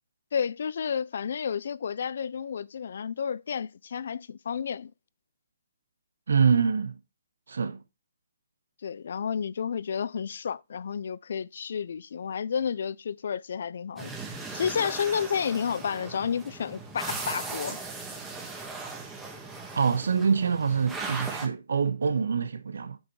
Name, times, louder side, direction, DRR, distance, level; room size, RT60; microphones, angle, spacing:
voice 1, 0.3-4.9 8.8-14.1 14.5-17.8, left 7 dB, 55° left, 0.5 m, -31 dB
voice 2, 6.3-7.0 7.5-7.8 19.7-23.0, right 6 dB, 80° right, 1.2 m, -25 dB
sound 1, 14.0-21.5, right 3 dB, 5° right, 1.5 m, -38 dB
8.6 x 7.4 x 3.2 m
hypercardioid pair, 170°, 0 cm